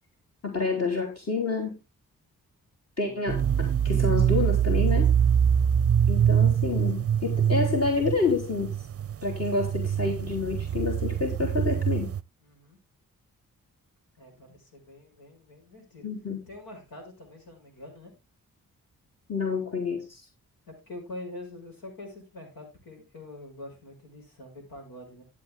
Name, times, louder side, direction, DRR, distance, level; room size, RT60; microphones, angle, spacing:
voice 1, 0.4-1.8 3.0-5.1 6.1-8.8 9.2-12.1 16.0-16.4 19.3-20.3, left 4 dB, 45° left, 3 dB, 3.5 m, -28 dB
sound 1, 3.3-12.2, right 9 dB, 40° right, 0.6 m, -24 dB
voice 2, 5.5-5.9 12.4-12.8 14.2-16.1 16.5-18.1 20.7-25.2, left 1 dB, 85° left, 2 dB, 5.9 m, -45 dB
12.5 x 8.3 x 3.6 m, 0.26 s
cardioid pair, 50°, 35 cm